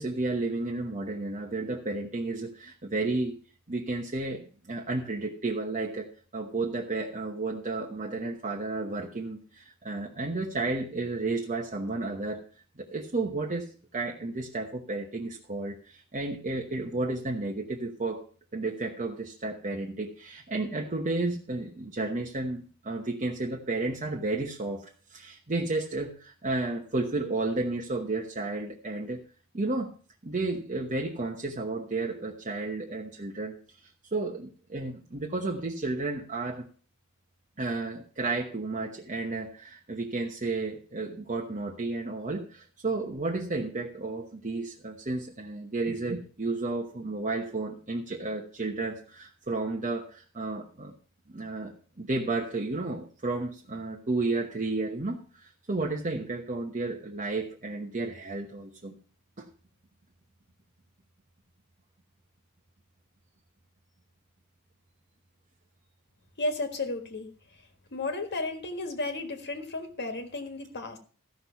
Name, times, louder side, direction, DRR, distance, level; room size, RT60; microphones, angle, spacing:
voice 1, 0.0-3.4 3.7-12.4 12.8-18.2 18.5-29.2 29.5-29.9 30.2-33.6 34.1-36.6 37.6-50.9 51.3-59.0 59.4-59.5, right 2 dB, 35° right, 0 dB, 1.1 m, -32 dB
voice 2, 66.4-67.3 67.9-71.0, left 2 dB, 50° left, 5 dB, 1.6 m, -33 dB
14.5 x 6.3 x 5.7 m, 0.41 s
head